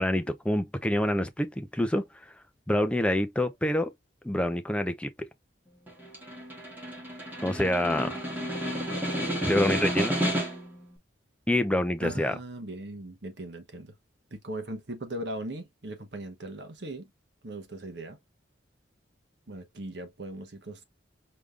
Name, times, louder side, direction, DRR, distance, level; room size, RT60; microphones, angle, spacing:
voice 1, 0.0-2.1 2.7-3.9 4.2-5.1 7.4-8.2 9.4-10.2 11.5-12.3, left 1 dB, 5° left, 0.5 m, -26 dB
Snare drum, 5.9-10.8, equal, 10° right, 1.9 m, -31 dB
voice 2, 12.0-13.9 14.3-17.1 17.4-18.2 19.5-20.8, right 1 dB, 60° right, 1.2 m, -39 dB
5.0 x 3.6 x 2.4 m
head